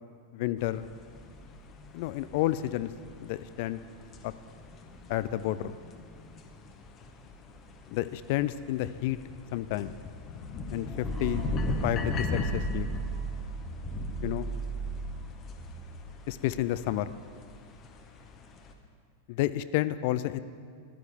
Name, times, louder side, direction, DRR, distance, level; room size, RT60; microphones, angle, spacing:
voice 1, 0.3-0.9 1.9-2.9 3.2-3.8 4.2-4.3 5.1-5.7 7.9-9.2 9.5-10.0 10.7-11.5 11.8-12.9 14.2-14.5 16.3-17.1 19.3-20.4, left 14 dB, 50° left, 15 dB, 0.3 m, -30 dB
sound 1, 0.6-18.7, left 3 dB, 30° left, 0.9 m, -40 dB
sound 2, 11.0-16.9, right 5 dB, 5° right, 2.1 m, -37 dB
15.0 x 11.0 x 3.5 m, 2.1 s
figure-of-eight pair, 90°, 0 cm